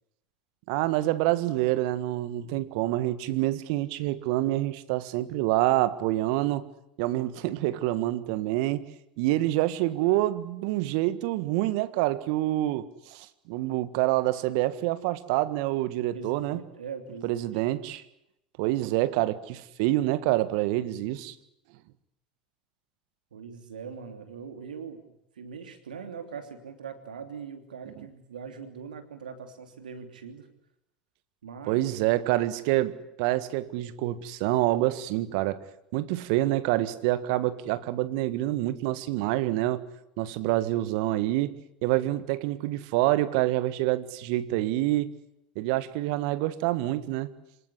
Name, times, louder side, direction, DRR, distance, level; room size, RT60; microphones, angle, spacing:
voice 1, 0.7-6.7 7.0-8.9 9.2-16.6 17.2-18.0 18.6-21.4 31.7-35.6 35.9-39.8 40.2-45.1 45.6-47.3, right 16 dB, 60° right, 14 dB, 1.6 m, -27 dB
voice 2, 16.1-17.4 23.3-25.0 25.3-30.5 31.4-31.8, right 6 dB, 80° right, 7 dB, 3.1 m, -41 dB
26.5 x 18.5 x 9.9 m, 0.82 s
hypercardioid pair, 80°, 4 cm